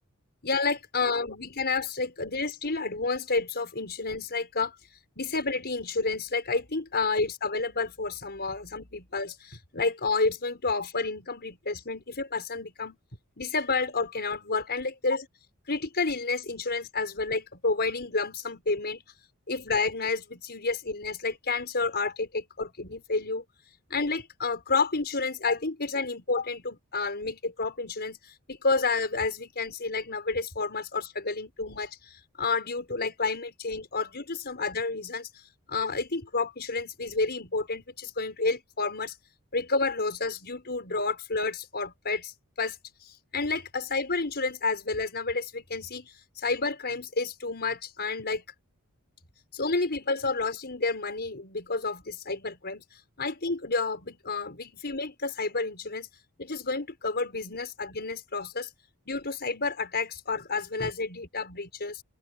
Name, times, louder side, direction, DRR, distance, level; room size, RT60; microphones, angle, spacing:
voice 1, 0.4-4.7 5.2-13.0 13.4-15.3 15.7-19.0 19.5-23.4 23.9-28.2 28.5-35.3 35.7-39.1 39.5-42.3 42.6-42.8 43.3-48.4 49.5-52.8 53.2-56.1 56.4-58.7 59.1-62.0, left 3 dB, 50° left, 5.7 m, -30 dB
open air
head